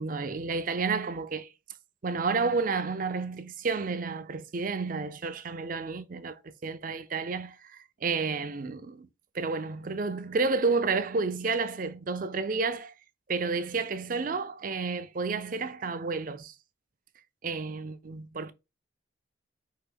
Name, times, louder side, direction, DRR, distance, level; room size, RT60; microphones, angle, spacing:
voice 1, 0.0-1.5 2.0-9.1 9.3-12.9 13.3-16.5 17.4-18.5, right 4 dB, 45° right, 0.5 m, -31 dB
4.6 x 3.0 x 3.4 m
head